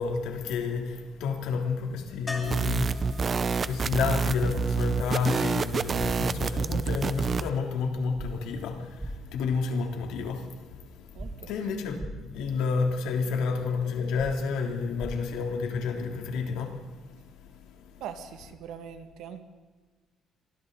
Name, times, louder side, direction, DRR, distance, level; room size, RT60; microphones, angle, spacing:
voice 1, 0.0-18.0, left 5 dB, 85° left, 3.2 m, -31 dB
sound 1, 2.3-6.1 8.8-8.9 9.1-9.2, left 2 dB, 15° left, 2.5 m, -44 dB
sound 2, 2.4-7.5, right 5 dB, 30° right, 0.7 m, -28 dB
sound 3, 6.0-6.1 8.2-8.3 9.0-9.1 11.2-11.3 12.0-12.1 14.2-14.3 15.0-15.1, right 1 dB, 10° right, 1.9 m, -37 dB
voice 2, 18.0-19.4, right 8 dB, 75° right, 2.1 m, -41 dB
28.5 x 23.0 x 4.1 m
cardioid pair, 155°, 0 cm